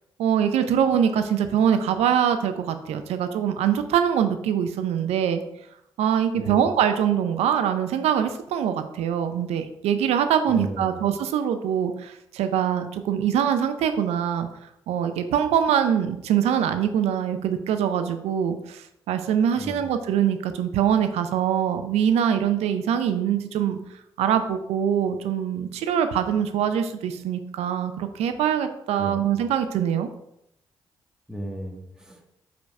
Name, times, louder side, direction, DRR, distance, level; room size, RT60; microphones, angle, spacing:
voice 1, 0.2-5.4 6.0-14.5 14.9-23.8 24.2-30.1, right 9 dB, 80° right, 9 dB, 0.6 m, -23 dB
voice 2, 6.4-6.7 10.5-11.0 19.6-19.9 29.0-29.3 31.3-32.3, equal, 5° right, 0 dB, 1.8 m, -35 dB
5.2 x 4.0 x 4.7 m, 0.79 s
hypercardioid pair, 45°, 11 cm